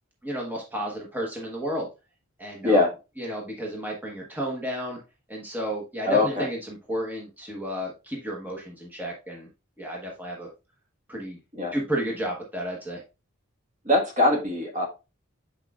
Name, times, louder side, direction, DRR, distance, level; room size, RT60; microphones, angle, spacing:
voice 1, 0.2-1.9 2.4-2.8 3.2-5.0 5.3-9.5 9.8-10.5 11.1-11.4 11.7-13.0, right 1 dB, 10° right, -2 dB, 1.2 m, -32 dB
voice 2, 2.6-2.9 6.0-6.5 11.5-11.7 13.8-14.9, left 2 dB, 35° right, 1 dB, 1.5 m, -22 dB
8.2 x 4.8 x 2.4 m, 0.28 s
head